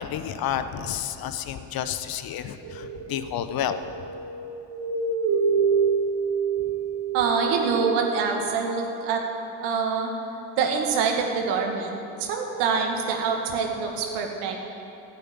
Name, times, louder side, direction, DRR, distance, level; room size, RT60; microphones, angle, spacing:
voice 1, 0.0-3.8, left 9 dB, 55° left, 10 dB, 0.9 m, -30 dB
sound 1, 2.6-7.9, right 6 dB, 50° right, 2.2 m, -27 dB
voice 2, 7.1-9.2 9.6-10.1 10.6-14.6, right 5 dB, 75° right, 2 dB, 2.0 m, -25 dB
11.5 x 8.4 x 9.2 m, 3.0 s
hypercardioid pair, 60°, 42 cm